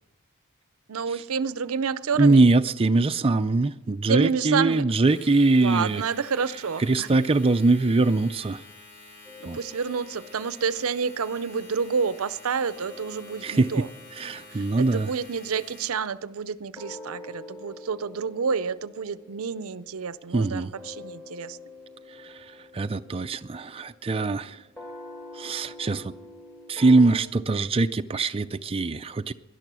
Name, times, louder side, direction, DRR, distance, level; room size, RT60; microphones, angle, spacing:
voice 1, 0.9-2.4 4.1-4.9 5.6-7.1 9.4-13.9 14.5-21.6, right 6 dB, 70° right, 0.6 m, -29 dB
voice 2, 2.2-6.0 6.9-8.6 9.5-9.6 13.4-13.8 14.2-15.1 20.3-20.7 22.2-22.3 22.7-24.6 25.4-26.1 26.7-29.3, right 3 dB, 25° right, 0.4 m, -22 dB
Domestic sounds home sounds, 4.9-16.1, left 3 dB, 55° left, 3.1 m, -49 dB
sound 1, 9.2-12.5 12.8-27.2, left 2 dB, 10° left, 1.8 m, -47 dB
19.0 x 11.5 x 6.2 m
head